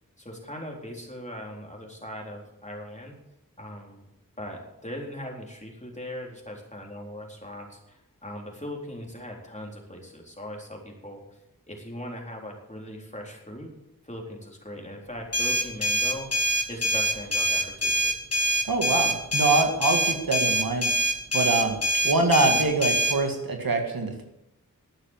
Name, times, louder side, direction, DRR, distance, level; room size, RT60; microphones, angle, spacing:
voice 1, 0.2-3.1 3.6-4.0 4.4-11.2 11.7-13.7 14.0-16.3 16.7-18.1, equal, 20° left, 0 dB, 3.9 m, -39 dB
sound 1, 15.3-23.2, right 1 dB, 45° left, 2.1 m, -25 dB
voice 2, 18.6-20.9 21.3-21.8 22.0-24.2, right 3 dB, 90° right, 3 dB, 2.0 m, -24 dB
12.0 x 9.2 x 7.4 m, 0.88 s
wide cardioid pair, 40°, 34 cm